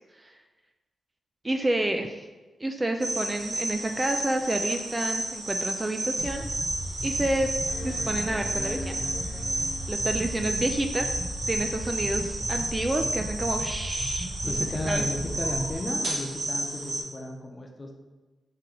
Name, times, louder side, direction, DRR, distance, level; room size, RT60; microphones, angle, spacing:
voice 1, 1.4-2.3 2.6-6.5 7.0-7.5 7.8-8.9 9.9-11.1 11.5-14.5 14.9-15.0, right 1 dB, 20° right, 5 dB, 0.3 m, -29 dB
sound 1, 3.0-17.0, right 1 dB, 70° right, 1.5 m, -32 dB
sound 2, 5.5-5.6 6.2-6.3 7.7-10.1 11.9-12.0, left 1 dB, 80° left, 1.1 m, -42 dB
sound 3, 6.2-15.7, right 1 dB, 90° right, 1.2 m, -36 dB
voice 2, 14.4-18.0, left 1 dB, 30° left, 2 dB, 0.7 m, -34 dB
3.7 x 2.9 x 4.5 m, 1.2 s
cardioid pair, 70°, 0 cm